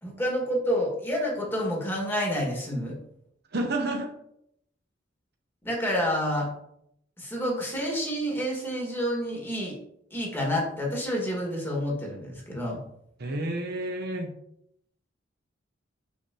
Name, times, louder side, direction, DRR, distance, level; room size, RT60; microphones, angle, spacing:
voice 1, 0.0-3.0 5.6-6.5 7.2-9.8 10.1-12.8, equal, 10° left, -3 dB, 1.9 m, -29 dB
voice 2, 3.5-4.1 13.2-14.3, right 1 dB, 55° right, 3 dB, 0.9 m, -30 dB
6.5 x 5.6 x 2.9 m, 0.75 s
head